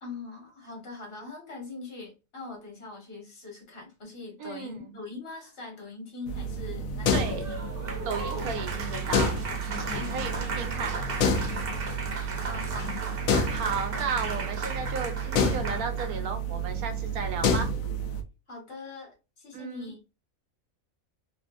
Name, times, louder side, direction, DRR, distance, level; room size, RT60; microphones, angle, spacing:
voice 1, 0.0-7.6 10.0-10.5 12.4-13.0 18.5-20.0, left 3 dB, 45° left, 1.6 m, -42 dB
voice 2, 4.4-5.0 7.1-7.5 8.0-9.3 9.7-11.0 13.5-17.7 19.5-19.9, right 5 dB, 90° right, 1.2 m, -34 dB
sound 1, 6.3-18.2, left 1 dB, 75° left, 1.0 m, -30 dB
Applause, 7.0-16.2, right 4 dB, 50° right, 0.8 m, -36 dB
3.3 x 2.5 x 2.4 m
omnidirectional pair, 1.5 m